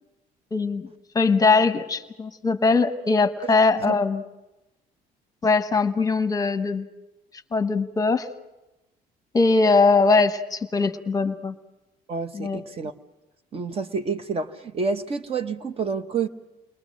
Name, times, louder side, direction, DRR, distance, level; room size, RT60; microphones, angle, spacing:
voice 1, 0.5-0.9 1.1-4.2 5.4-6.8 7.5-8.3 9.3-11.5 12.3-12.6, left 4 dB, 20° left, 9 dB, 1.0 m, -21 dB
voice 2, 12.1-12.9 13.5-16.3, right 5 dB, 35° right, 10 dB, 1.0 m, -28 dB
29.0 x 22.0 x 6.4 m, 1.0 s
cardioid pair, 140°, 17 cm